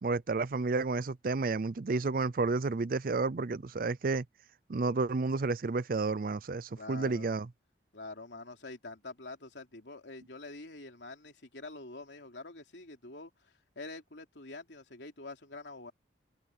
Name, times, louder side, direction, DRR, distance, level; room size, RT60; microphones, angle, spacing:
voice 1, 0.0-4.2 4.7-7.5, right 3 dB, 50° right, 0.5 m, -31 dB
voice 2, 6.8-7.3 7.9-15.9, left 2 dB, 85° left, 3.2 m, -46 dB
head